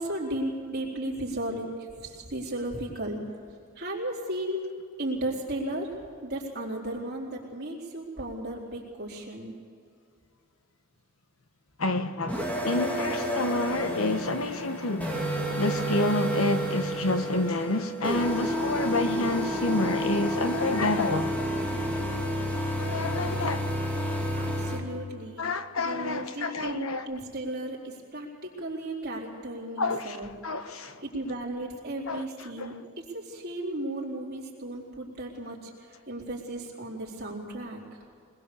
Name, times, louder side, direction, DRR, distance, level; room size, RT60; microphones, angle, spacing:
voice 1, 0.0-1.7 1.9-3.2 3.8-4.6 5.0-5.9 6.2-9.5 24.3-25.4 25.8-30.3 30.6-35.7 36.1-37.8, right 1 dB, 50° right, 4.0 m, -35 dB
voice 2, 11.8-15.2 15.6-21.3 22.8-23.6 25.4-27.1 29.8-31.0 32.1-32.2 32.6-32.7, left 2 dB, 85° left, 1.3 m, -29 dB
sound 1, 12.3-24.8, equal, 10° left, 2.7 m, -30 dB
23.0 x 20.5 x 7.0 m
head